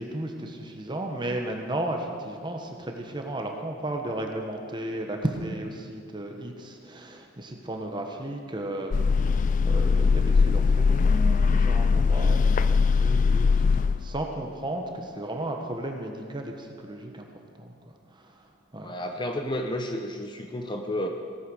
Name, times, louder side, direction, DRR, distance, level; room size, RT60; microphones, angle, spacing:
voice 1, 0.0-17.2 17.6-17.7 18.1-18.9, right 1 dB, 25° right, 2 dB, 1.4 m, -34 dB
sound 1, 8.9-14.2, left 5 dB, 40° left, 0.3 m, -21 dB
voice 2, 18.8-21.1, left 1 dB, 25° left, 4 dB, 0.8 m, -31 dB
16.5 x 9.3 x 6.4 m, 2.2 s
head